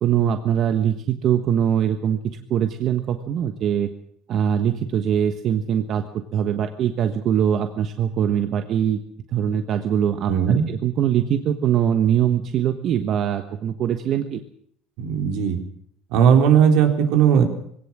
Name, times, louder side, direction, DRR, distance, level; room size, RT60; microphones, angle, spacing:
voice 1, 0.0-2.2 2.5-3.9 4.3-6.0 6.3-9.0 9.3-14.4, right 9 dB, 50° right, 7 dB, 1.3 m, -22 dB
voice 2, 10.3-10.6 15.0-15.6 16.1-17.4, right 8 dB, 80° right, 4 dB, 3.9 m, -17 dB
21.5 x 17.5 x 7.5 m, 0.68 s
cardioid pair, 125°, 0 cm